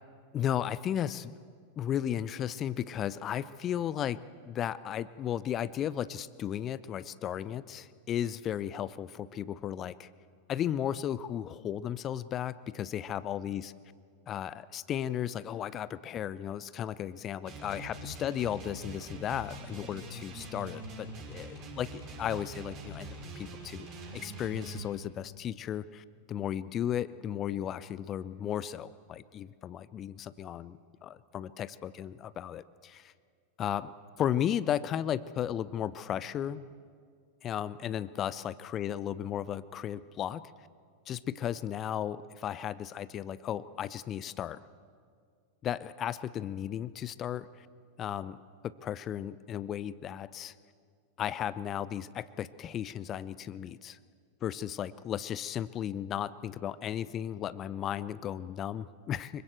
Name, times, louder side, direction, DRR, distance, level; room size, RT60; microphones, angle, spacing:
voice 1, 0.3-1.3 1.8-4.2 4.5-10.1 10.5-13.7 14.3-23.9 24.1-33.1 33.6-36.7 37.4-40.4 41.1-44.6 45.6-47.7 48.0-48.4 48.6-50.5 51.2-54.0 54.4-59.4, left 10 dB, 30° left, 17 dB, 0.7 m, -35 dB
sound 1, 17.4-24.9, right 2 dB, 40° right, 5.6 m, -44 dB
25.0 x 23.5 x 7.9 m, 2.1 s
figure-of-eight pair, 90°, 0 cm